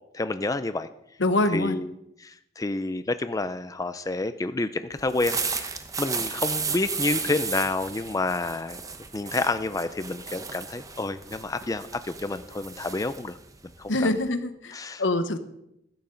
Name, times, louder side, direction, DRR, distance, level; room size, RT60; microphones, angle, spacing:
voice 1, 0.1-0.9 1.5-1.9 2.2-8.8 9.1-13.4 13.6-13.9 14.7-15.0, left 2 dB, 20° left, 11 dB, 0.4 m, -29 dB
voice 2, 1.2-1.8 13.9-15.4, left 2 dB, 80° left, 10 dB, 1.0 m, -25 dB
sound 1, 5.0-14.3, right 5 dB, 20° right, 0.9 m, -34 dB
15.5 x 12.5 x 3.9 m, 0.81 s
head